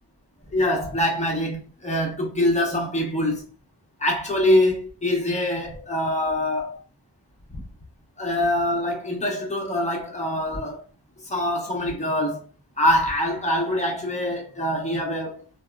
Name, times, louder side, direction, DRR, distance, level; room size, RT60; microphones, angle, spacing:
voice 1, 0.5-3.4 4.0-6.8 7.5-7.6 8.2-10.8 11.3-12.5 12.8-15.4, left 1 dB, 15° left, 0.9 m, -24 dB
2.8 x 2.2 x 2.3 m
cardioid pair, 45°, 42 cm